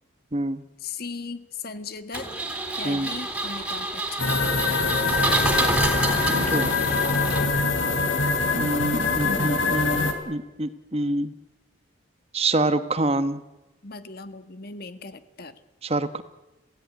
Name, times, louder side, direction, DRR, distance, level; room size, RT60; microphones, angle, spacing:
voice 1, 0.8-2.3 2.8-4.4 8.9-9.6 13.8-15.5, left 3 dB, 50° left, 11 dB, 1.5 m, -37 dB
Engine, 2.1-7.8, right 2 dB, 5° right, 3.4 m, -28 dB
sound 1, 4.2-10.1, left 3 dB, 75° left, 3.5 m, -24 dB
voice 2, 6.1-6.7 8.5-11.3 12.3-13.4 15.8-16.2, right 2 dB, 30° right, 12 dB, 1.2 m, -26 dB
27.5 x 16.5 x 9.5 m, 1.1 s
head